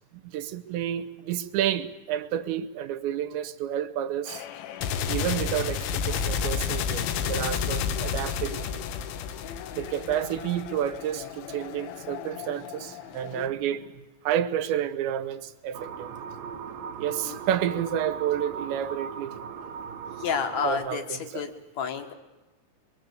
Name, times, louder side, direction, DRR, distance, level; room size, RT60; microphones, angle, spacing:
voice 1, 0.2-4.5 5.1-8.8 9.7-14.0 14.2-16.3 17.0-19.3 20.6-21.4, right 10 dB, 80° right, 3.3 m, -30 dB
sound 1, 4.3-13.5, left 7 dB, 90° left, 3.6 m, -31 dB
sound 2, 15.7-20.7, right 6 dB, 65° right, 2.5 m, -38 dB
voice 2, 17.1-17.4 20.2-22.1, left 6 dB, 60° left, 1.9 m, -31 dB
23.5 x 23.0 x 8.1 m
omnidirectional pair, 5.2 m